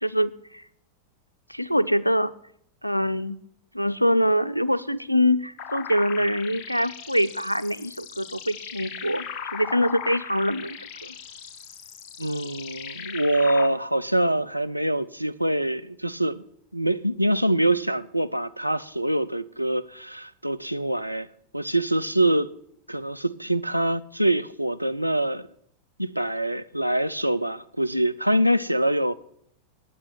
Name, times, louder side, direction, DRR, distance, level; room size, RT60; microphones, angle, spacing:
voice 1, 0.0-0.6 1.5-2.3 2.8-3.4 3.7-9.3 9.5-11.1, equal, 90° left, 0.4 m, -24 dB
sound 1, 5.6-13.7, left 7 dB, 40° left, 1.0 m, -38 dB
voice 2, 12.2-16.4 16.7-21.3 21.5-22.5 22.9-25.5 26.0-29.2, right 1 dB, 90° right, 0.4 m, -24 dB
9.6 x 8.4 x 8.9 m
figure-of-eight pair, 90°, 0 cm